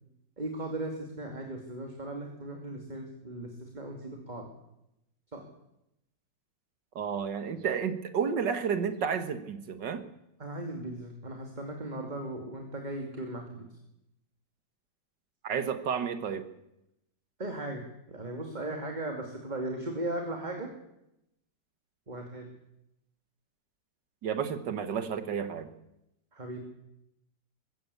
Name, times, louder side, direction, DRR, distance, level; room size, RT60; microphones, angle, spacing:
voice 1, 0.4-4.5 5.3-5.4 10.4-13.8 17.4-17.8 18.1-20.7 22.1-22.5 26.3-26.6, right 1 dB, 25° right, 2 dB, 2.6 m, -37 dB
voice 2, 7.0-10.1 15.4-16.5 24.2-25.7, right 7 dB, 75° right, 10 dB, 2.1 m, -31 dB
21.5 x 15.0 x 8.5 m, 0.87 s
omnidirectional pair, 1.9 m